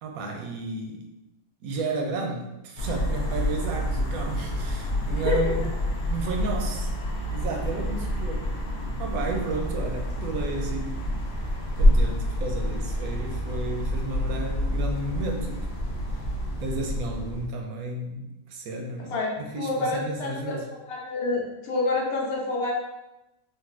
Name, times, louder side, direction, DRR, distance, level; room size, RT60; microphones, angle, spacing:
voice 1, 0.0-1.1 1.6-5.7 6.0-6.9 7.3-8.5 9.0-11.2 11.8-15.6 16.6-20.7, right 3 dB, 85° right, 2 dB, 1.1 m, -32 dB
sound 1, 2.8-17.5, equal, 60° left, 0.7 m, -27 dB
voice 2, 5.1-5.4 19.1-20.6 20.8-22.7, left 2 dB, 80° left, -2 dB, 1.2 m, -28 dB
3.8 x 2.2 x 2.4 m, 0.94 s
omnidirectional pair, 1.5 m